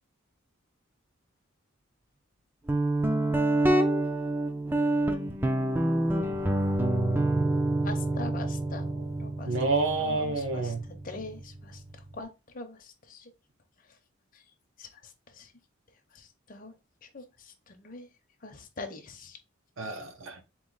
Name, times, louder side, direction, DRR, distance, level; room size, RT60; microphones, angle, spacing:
Guitar, 2.7-12.2, right 1 dB, 10° right, 0.4 m, -28 dB
voice 1, 7.8-9.5 10.0-13.3 14.3-14.4 14.8-15.5 16.1-16.7 17.0-18.1 18.4-19.4, left 3 dB, 40° left, 0.7 m, -43 dB
voice 2, 9.4-10.8 19.8-20.4, right 3 dB, 70° right, 0.7 m, -29 dB
4.0 x 3.0 x 3.9 m
head